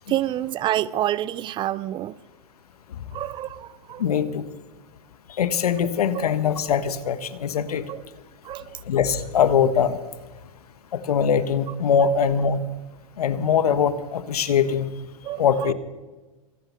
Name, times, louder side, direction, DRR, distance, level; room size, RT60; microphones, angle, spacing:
voice 1, 0.1-2.1 3.1-4.0 6.2-6.3 7.9-8.0 8.5-8.6 15.2-15.4, right 13 dB, 25° right, 0.4 m, -27 dB
voice 2, 4.0-4.4 5.4-7.8 8.9-10.0 10.9-12.6 13.2-14.9 15.4-15.7, left 7 dB, 90° left, 1.4 m, -22 dB
24.0 x 9.3 x 5.7 m
hypercardioid pair, 130°, 19 cm